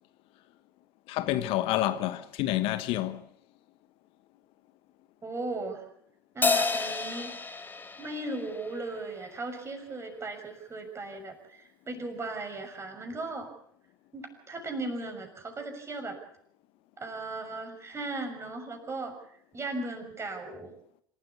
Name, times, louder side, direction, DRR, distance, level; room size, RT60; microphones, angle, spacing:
voice 1, 1.1-3.2, left 14 dB, 55° left, 1.2 m, -28 dB
voice 2, 5.2-5.8 6.3-7.3 8.0-13.5 14.1-16.2 17.0-20.7, right 2 dB, 25° right, 6.5 m, -37 dB
Crash cymbal, 6.4-9.1, left 4 dB, 15° left, 1.7 m, -30 dB
26.0 x 13.0 x 8.4 m
hypercardioid pair, 75°, 11 cm